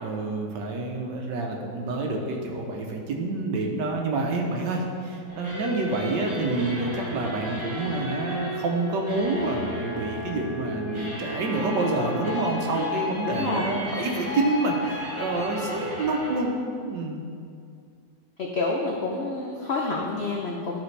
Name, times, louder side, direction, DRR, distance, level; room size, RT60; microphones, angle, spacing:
voice 1, 0.0-16.5 16.8-17.3, right 2 dB, 80° right, 1 dB, 1.5 m, -28 dB
sound 1, 5.3-16.4, left 1 dB, 15° right, 1.9 m, -34 dB
voice 2, 13.3-13.6 18.4-20.8, left 3 dB, 80° left, -1 dB, 0.5 m, -28 dB
11.5 x 4.2 x 3.3 m, 2.3 s
omnidirectional pair, 1.9 m